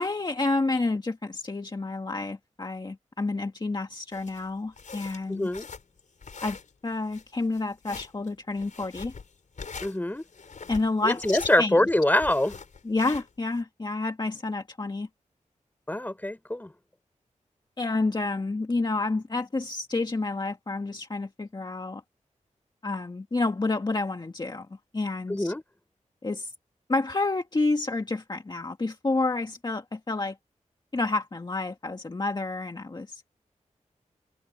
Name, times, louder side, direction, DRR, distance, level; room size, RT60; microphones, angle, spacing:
voice 1, 0.0-5.5 6.4-6.6 6.8-9.1 10.7-11.8 12.8-15.1 17.8-22.0 22.8-24.7 24.9-25.5 26.2-26.5 26.9-30.4 30.9-33.2, left 3 dB, 35° left, 1.9 m, -29 dB
sound 1, 4.1-13.6, left 5 dB, 75° left, 5.3 m, -43 dB
voice 2, 5.3-5.7 9.8-10.2 11.0-12.6 15.9-16.7 25.3-25.6, left 1 dB, 15° left, 3.8 m, -24 dB
open air
wide cardioid pair, 95°, 13 cm